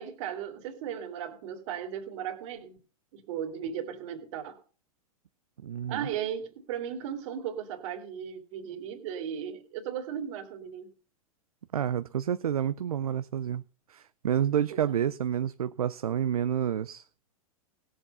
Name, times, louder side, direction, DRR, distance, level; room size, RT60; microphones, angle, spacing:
voice 1, 0.0-2.8 3.1-4.6 5.9-10.9 14.7-14.9, right 9 dB, 55° right, 2.5 m, -36 dB
voice 2, 5.6-6.1 11.7-13.6 13.9-17.0, right 9 dB, 85° right, 0.5 m, -29 dB
17.0 x 7.5 x 5.5 m
hypercardioid pair, 110°, 18 cm